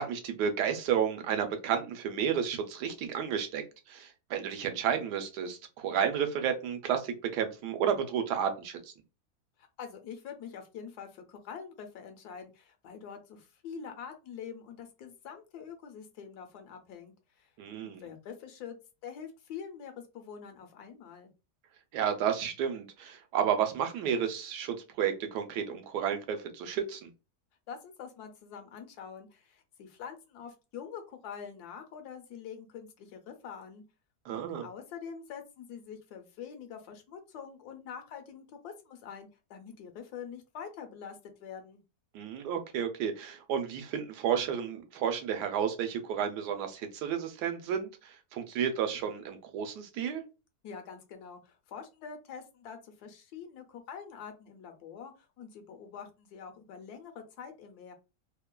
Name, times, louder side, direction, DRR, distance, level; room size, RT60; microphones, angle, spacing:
voice 1, 0.0-8.9 17.6-18.0 21.9-27.1 34.3-34.7 42.1-50.2, right 8 dB, 80° right, 6 dB, 1.1 m, -32 dB
voice 2, 9.6-17.5 17.8-18.8 19.0-21.3 27.7-33.8 34.3-41.8 50.6-57.9, left 7 dB, 75° left, 5 dB, 1.1 m, -45 dB
3.1 x 2.1 x 2.2 m, 0.29 s
omnidirectional pair, 1.8 m